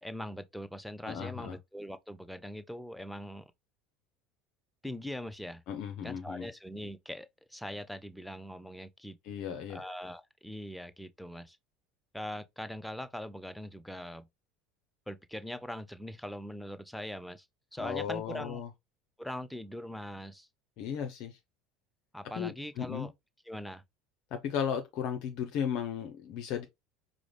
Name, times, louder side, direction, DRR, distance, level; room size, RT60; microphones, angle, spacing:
voice 1, 0.0-3.4 4.8-5.6 6.0-9.2 9.7-11.6 12.1-14.3 15.1-17.5 17.7-18.6 19.2-20.5 22.1-23.1 23.5-23.8, equal, 5° left, 0.5 m, -41 dB
voice 2, 1.1-1.6 5.7-6.5 9.2-9.8 17.8-18.7 20.8-21.4 22.3-23.1 24.3-26.6, left 8 dB, 55° left, 0.5 m, -35 dB
4.8 x 2.0 x 3.1 m
figure-of-eight pair, 70°, 0 cm